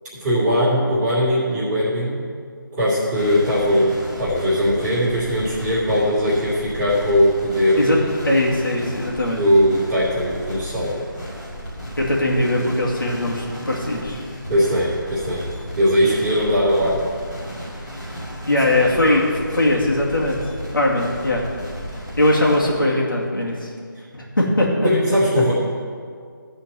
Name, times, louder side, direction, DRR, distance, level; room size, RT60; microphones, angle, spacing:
voice 1, 0.2-2.2 2.8-8.0 9.3-11.0 14.5-15.4 15.8-17.1 18.7-18.8 24.8-25.5, equal, 10° right, -11 dB, 2.8 m, -19 dB
sound 1, 3.1-22.7, equal, 20° left, 2.6 m, -34 dB
voice 2, 8.2-9.4 12.0-14.2 18.5-20.4 20.7-21.5 22.2-23.7 24.1-24.9, left 1 dB, 70° left, -4 dB, 2.4 m, -20 dB
13.5 x 4.5 x 7.5 m, 2.1 s
figure-of-eight pair, 155°, 11 cm